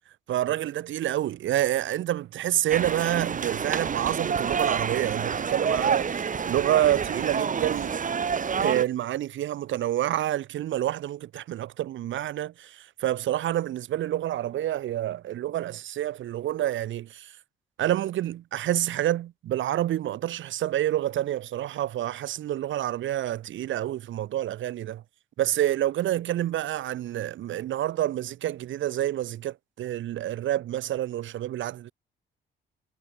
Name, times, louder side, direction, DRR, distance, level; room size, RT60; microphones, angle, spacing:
voice 1, 0.3-7.9 8.6-17.4 17.8-25.0 25.4-31.9, right 13 dB, 75° right, 1.5 m, -28 dB
sound 1, 2.7-8.8, right 6 dB, 40° right, 2.5 m, -28 dB
cardioid pair, 90°, 20 cm